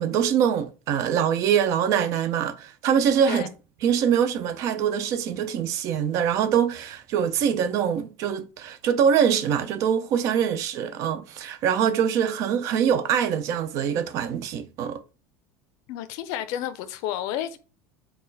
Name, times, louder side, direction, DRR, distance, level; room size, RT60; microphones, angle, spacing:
voice 1, 0.0-3.5 3.8-15.0, right 8 dB, 45° right, 0.4 m, -24 dB
voice 2, 15.9-17.6, left 11 dB, 55° left, 0.5 m, -31 dB
4.0 x 2.2 x 3.9 m
supercardioid pair, 155°, 8 cm